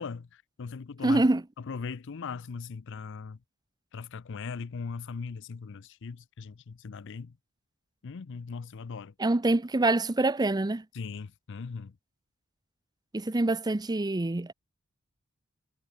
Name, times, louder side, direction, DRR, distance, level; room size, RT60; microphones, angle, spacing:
voice 1, 0.0-1.2 1.6-3.4 3.9-7.4 8.0-9.1 10.9-11.9, left 5 dB, 60° left, 0.5 m, -39 dB
voice 2, 1.0-1.4 9.2-10.8 13.1-14.5, right 2 dB, 20° right, 0.6 m, -25 dB
head